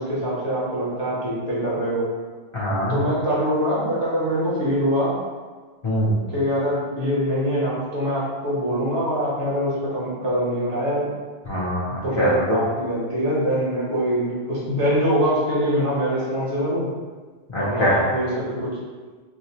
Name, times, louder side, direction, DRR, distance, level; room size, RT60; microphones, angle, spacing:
voice 1, 0.0-2.0 2.9-5.2 6.3-11.1 12.0-16.9 17.6-18.7, equal, 75° right, -7 dB, 1.4 m, -23 dB
voice 2, 2.5-3.0 5.8-6.2 11.5-12.6 17.5-18.0, equal, 40° left, -8 dB, 0.4 m, -23 dB
4.9 x 2.0 x 2.7 m, 1.4 s
omnidirectional pair, 1.2 m